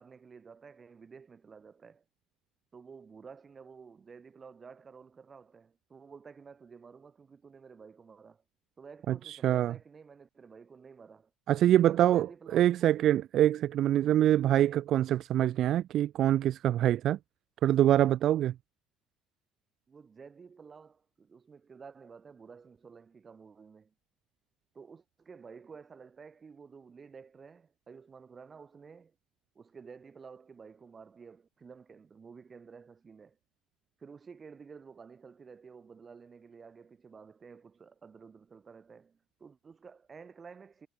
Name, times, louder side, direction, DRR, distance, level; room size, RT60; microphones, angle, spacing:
voice 1, 0.0-2.0 2.7-8.4 8.8-11.3 11.9-12.9 19.9-23.9 24.7-29.1 29.5-33.4 34.0-40.9, right 5 dB, 25° right, 6.6 m, -52 dB
voice 2, 9.1-9.7 11.5-12.3 12.5-17.2 17.6-18.5, right 12 dB, 55° right, 0.3 m, -25 dB
cardioid pair, 125°, 0 cm